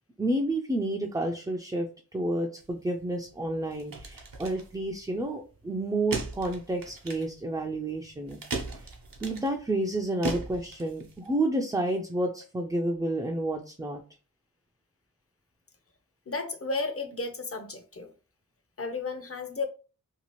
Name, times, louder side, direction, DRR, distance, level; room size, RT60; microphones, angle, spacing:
voice 1, 0.2-1.9 2.1-8.4 9.2-14.0, right 1 dB, 10° right, 0.3 m, -30 dB
sound 1, 2.6-11.3, right 3 dB, 70° right, 0.7 m, -39 dB
voice 2, 16.3-18.1 18.8-19.7, left 3 dB, 40° left, 0.6 m, -33 dB
2.7 x 2.4 x 3.0 m
wide cardioid pair, 65°, 35 cm